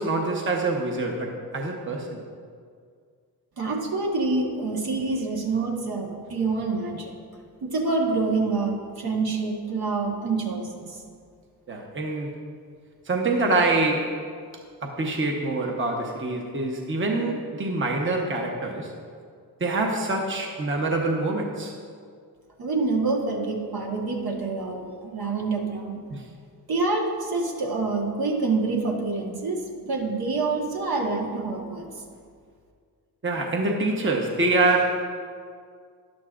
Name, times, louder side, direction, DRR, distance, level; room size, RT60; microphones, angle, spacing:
voice 1, 0.0-2.2 11.7-12.4 13.1-14.2 14.8-18.9 19.6-21.7 26.1-26.2 33.2-35.0, right 2 dB, 30° right, 1 dB, 1.1 m, -25 dB
voice 2, 3.6-7.1 7.6-11.0 22.6-26.0 26.7-31.9, right 3 dB, 65° right, -1 dB, 1.5 m, -27 dB
13.0 x 11.0 x 2.5 m, 2.1 s
wide cardioid pair, 110°, 40 cm